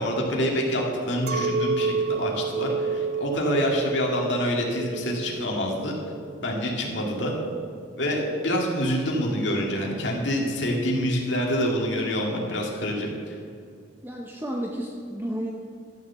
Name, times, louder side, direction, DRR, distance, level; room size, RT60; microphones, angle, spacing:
voice 1, 0.0-5.9 6.4-7.3 8.0-13.4, equal, 70° left, -1 dB, 2.3 m, -26 dB
Chink clink, 1.3-6.7, right 4 dB, 50° right, 0.4 m, -30 dB
voice 2, 14.0-15.5, equal, 10° right, 0 dB, 0.7 m, -32 dB
13.0 x 7.1 x 7.0 m, 2.3 s
head